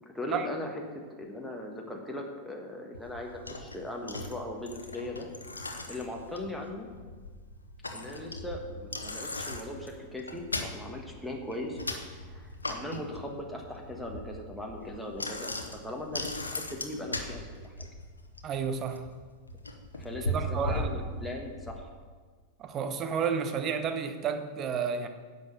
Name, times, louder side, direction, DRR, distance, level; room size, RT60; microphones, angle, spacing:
voice 1, 0.0-5.3 5.9-6.9 7.9-11.8 12.2-17.7 19.9-21.9, left 1 dB, ahead, -1 dB, 1.4 m, -39 dB
Bicycle, 2.9-21.8, left 1 dB, 80° left, 0.9 m, -39 dB
voice 2, 18.4-19.0 20.3-20.9 22.6-25.1, right 6 dB, 30° right, 9 dB, 0.9 m, -31 dB
10.5 x 6.7 x 6.7 m, 1.5 s
figure-of-eight pair, 90°, 0 cm